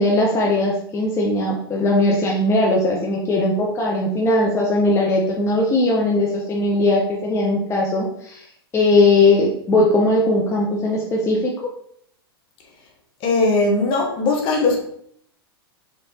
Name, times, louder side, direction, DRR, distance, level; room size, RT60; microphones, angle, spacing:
voice 1, 0.0-8.5 8.7-11.5, left 2 dB, 20° left, -2 dB, 0.9 m, -19 dB
voice 2, 13.2-14.8, left 3 dB, 40° left, 1 dB, 1.2 m, -19 dB
5.5 x 3.3 x 2.8 m, 0.66 s
hypercardioid pair, 100°, 13 cm